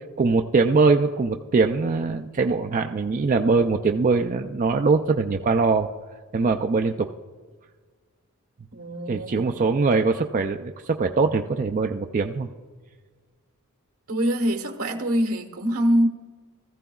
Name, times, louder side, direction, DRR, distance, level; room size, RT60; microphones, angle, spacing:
voice 1, 0.2-5.9 6.3-7.1 9.1-12.5, right 4 dB, 35° right, 5 dB, 0.3 m, -22 dB
voice 2, 8.7-9.5 14.1-16.1, equal, 80° right, 5 dB, 1.2 m, -24 dB
16.5 x 14.5 x 2.3 m, 1.5 s
head